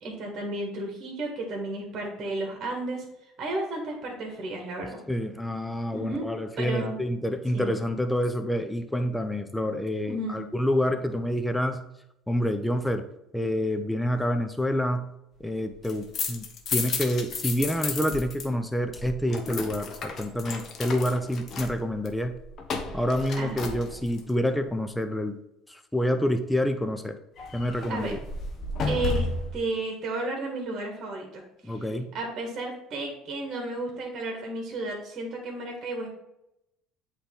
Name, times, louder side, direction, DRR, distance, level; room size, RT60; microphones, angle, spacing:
voice 1, 0.0-3.0 3.4-5.0 5.9-6.3 6.6-7.0 7.5-7.7 10.1-10.4 23.3-23.6 27.9-28.1 28.9-29.3 29.5-31.9 32.1-36.1, right 2 dB, 45° right, 1 dB, 1.6 m, -33 dB
voice 2, 5.1-11.9 12.3-13.1 13.3-15.1 15.4-16.5 16.7-22.4 22.9-25.4 25.7-27.2 27.5-28.2 31.7-32.1, equal, 5° left, 7 dB, 0.6 m, -27 dB
sound 1, 15.7-18.5 18.7-24.3 27.4-29.6, left 4 dB, 50° left, 1.0 m, -33 dB
7.9 x 3.3 x 3.8 m, 0.85 s
hypercardioid pair, 70°, 0 cm